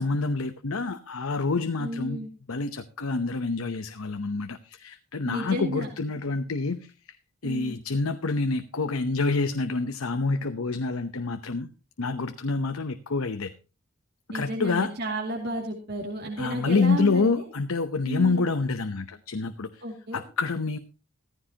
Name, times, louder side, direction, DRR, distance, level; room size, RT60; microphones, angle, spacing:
voice 1, 0.0-6.9 7.4-11.7 12.0-13.5 14.3-14.9 16.4-19.8 20.1-20.8, left 3 dB, 90° left, 8 dB, 0.8 m, -27 dB
voice 2, 1.8-2.3 5.2-5.9 7.4-7.7 14.3-17.5 18.1-18.5 19.8-20.2, right 1 dB, 50° right, -1 dB, 2.4 m, -32 dB
15.5 x 14.5 x 2.9 m, 0.33 s
head